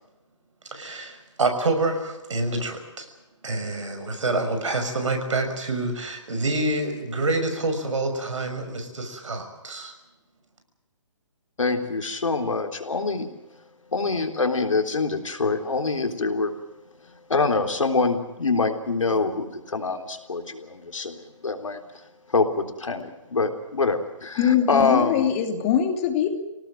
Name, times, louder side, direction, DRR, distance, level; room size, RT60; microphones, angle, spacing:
voice 1, 0.7-3.0 3.4-9.9, right 2 dB, 75° right, 6 dB, 6.2 m, -27 dB
voice 2, 11.6-13.3 13.9-16.5 17.3-21.8 22.3-25.3, left 3 dB, 85° left, 5 dB, 3.6 m, -25 dB
voice 3, 24.4-26.3, left 9 dB, 25° left, 6 dB, 2.8 m, -22 dB
26.5 x 18.0 x 7.7 m, 1.0 s
hypercardioid pair, 150°, 16 cm